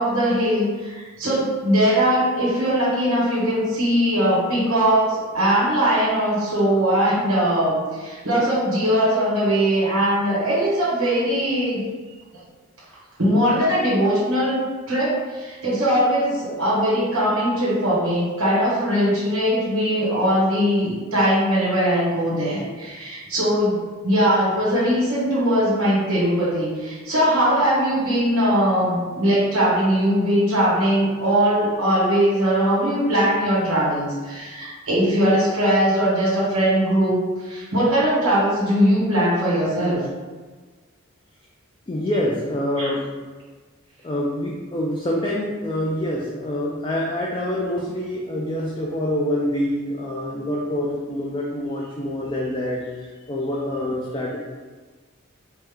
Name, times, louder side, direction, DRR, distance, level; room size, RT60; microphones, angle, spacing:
voice 1, 0.0-11.8 13.2-14.6 14.9-23.8 24.0-40.0 42.8-42.9, equal, 85° right, -8 dB, 1.2 m, -20 dB
voice 2, 41.9-43.1 44.0-54.4, left 1 dB, 20° left, -3 dB, 0.3 m, -26 dB
4.4 x 2.1 x 3.5 m, 1.4 s
head